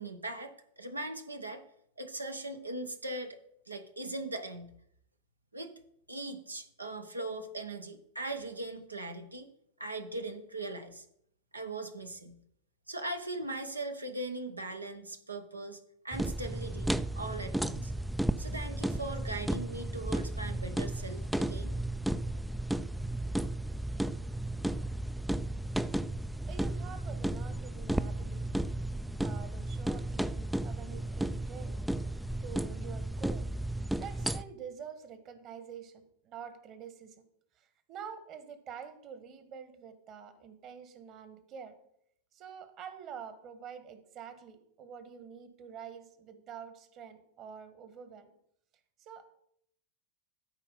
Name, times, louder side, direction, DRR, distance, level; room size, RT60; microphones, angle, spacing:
voice 1, 0.0-1.6 2.0-3.4 3.7-4.7 5.5-5.7 6.1-9.5 9.8-11.0 11.5-12.4 12.9-15.8 16.0-16.9 17.1-17.9 18.4-21.7, right 2 dB, 80° right, 7 dB, 0.9 m, -39 dB
sound 1, 16.1-34.4, right 1 dB, ahead, 0.3 m, -34 dB
voice 2, 26.5-28.6 29.2-37.2 37.5-41.8 42.3-48.3 49.0-49.3, right 7 dB, 35° right, 10 dB, 1.4 m, -47 dB
13.0 x 4.7 x 5.5 m, 0.72 s
figure-of-eight pair, 90°, 0 cm